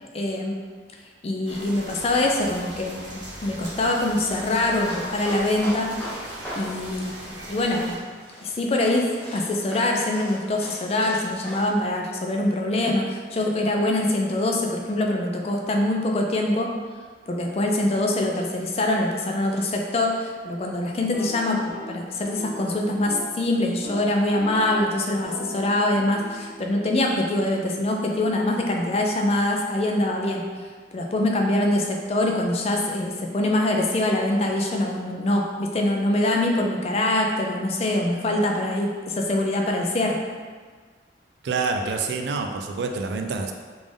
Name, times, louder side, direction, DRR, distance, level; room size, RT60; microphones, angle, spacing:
voice 1, 0.0-0.6 1.2-5.9 6.6-7.1 7.5-8.0 8.4-16.7 17.3-30.5 30.9-40.2, left 1 dB, 35° left, 1 dB, 0.3 m, -24 dB
sound 1, 1.5-8.0, right 1 dB, 85° right, 0.8 m, -40 dB
sound 2, 4.7-11.7, equal, 10° left, 1.0 m, -38 dB
sound 3, 21.0-23.4 23.7-24.1 24.4-28.2, left 1 dB, 25° right, 1.1 m, -40 dB
voice 2, 41.4-43.5, right 4 dB, 65° right, 4 dB, 0.3 m, -27 dB
3.5 x 2.5 x 3.4 m, 1.6 s
head